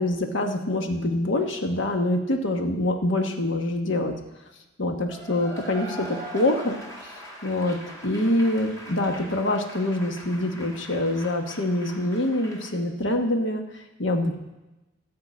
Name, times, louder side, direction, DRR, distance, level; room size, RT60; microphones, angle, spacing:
voice 1, 0.0-4.1 4.8-6.8 7.4-14.4, left 1 dB, 60° left, 4 dB, 1.2 m, -25 dB
Cheering / Applause / Crowd, 5.1-12.7, right 1 dB, 15° left, 2.0 m, -41 dB
14.5 x 4.8 x 8.4 m, 1.1 s
head